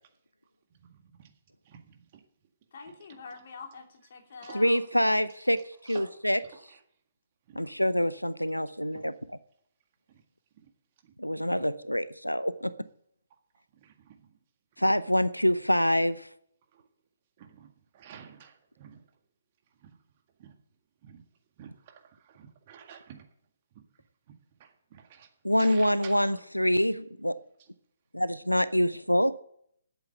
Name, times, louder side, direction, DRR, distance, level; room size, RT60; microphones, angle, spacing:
voice 1, 0.8-1.3 1.6-2.2 2.9-3.0 3.3-3.4 4.4-4.6 5.9-6.2 6.5-6.8 7.5-7.7 8.9-9.1 10.1-10.2 10.6-10.7 11.0-11.1 11.6-11.7 13.7-14.3 16.7-16.8 17.4-19.1 19.8-20.0 20.4-20.6 21.0-21.2 21.6-23.3 23.7-23.8 24.3-25.3 25.5-26.4 27.6-27.7, right 8 dB, 35° right, 4 dB, 1.8 m, -51 dB
voice 2, 2.7-4.8, left 4 dB, 45° left, 2 dB, 2.6 m, -45 dB
voice 3, 4.5-6.4 7.6-9.1 11.2-12.7 14.8-16.3 25.4-27.4 28.1-29.3, equal, 90° left, 16 dB, 0.6 m, -26 dB
11.5 x 8.3 x 7.9 m, 0.67 s
figure-of-eight pair, 135°, 0 cm